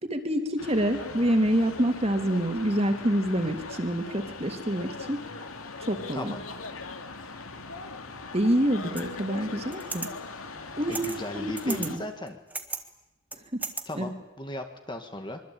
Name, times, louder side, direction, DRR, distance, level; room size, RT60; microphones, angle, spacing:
voice 1, 0.0-5.2 5.8-6.3 8.3-10.1 10.8-11.1 11.3-12.0 13.9-14.1, equal, 30° right, 5 dB, 3.0 m, -27 dB
sound 1, 0.6-12.0, left 3 dB, 85° left, 2.7 m, -40 dB
sound 2, 9.0-9.1 9.7-10.1 10.9-11.2 11.6-11.9 12.3-12.8 13.3-13.8, right 3 dB, 10° right, 1.6 m, -35 dB
voice 2, 10.9-12.4 13.9-15.4, left 1 dB, 20° left, 5 dB, 1.9 m, -36 dB
25.0 x 24.0 x 8.9 m, 0.96 s
head